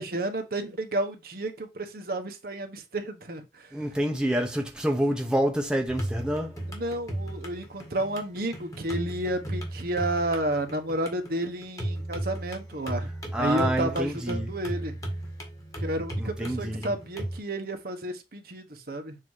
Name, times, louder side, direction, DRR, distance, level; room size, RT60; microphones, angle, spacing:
voice 1, 0.0-3.7 6.7-13.1 13.4-15.0 15.8-19.2, right 1 dB, 55° right, 1.1 m, -31 dB
voice 2, 3.7-6.6 13.3-14.5 16.2-16.9, right 1 dB, 5° right, 0.9 m, -27 dB
sound 1, 5.9-17.4, right 1 dB, 20° left, 1.7 m, -35 dB
7.5 x 2.9 x 4.7 m
head